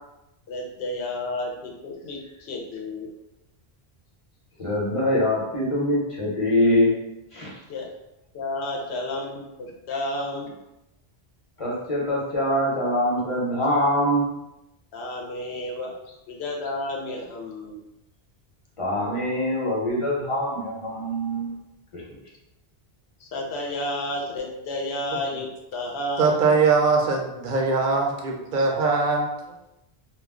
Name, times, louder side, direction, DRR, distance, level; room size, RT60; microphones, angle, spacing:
voice 1, 0.5-3.1 7.7-7.9 8.3-10.5 14.9-15.9 16.3-17.8 23.2-26.3, left 1 dB, 85° left, 0 dB, 0.8 m, -31 dB
voice 2, 4.6-6.9 7.3-7.5 11.6-14.2 18.8-21.5 21.9-22.0, left 1 dB, 35° left, -5 dB, 0.8 m, -24 dB
voice 3, 26.2-29.3, right 4 dB, 60° right, 0 dB, 0.6 m, -21 dB
2.3 x 2.1 x 3.5 m, 0.91 s
omnidirectional pair, 1.1 m